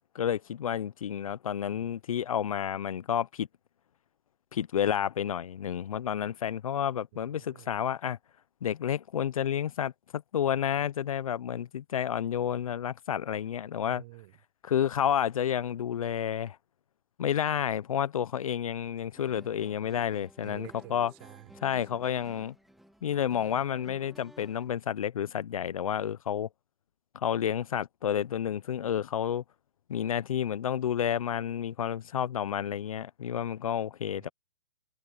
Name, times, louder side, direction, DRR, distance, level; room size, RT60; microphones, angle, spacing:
voice 1, 0.1-3.5 4.5-8.2 8.6-14.0 14.6-16.6 17.2-21.1 21.6-22.5 23.0-26.5 27.1-29.4 29.9-34.3, left 9 dB, 65° left, 1.0 m, -30 dB
voice 2, 7.2-7.7 13.8-14.4 20.4-21.6 21.9-22.0 34.1-34.3, right 21 dB, 40° right, 3.8 m, -50 dB
sound 1, 19.1-24.7, equal, ahead, 2.8 m, -54 dB
hypercardioid pair, 130°, 19 cm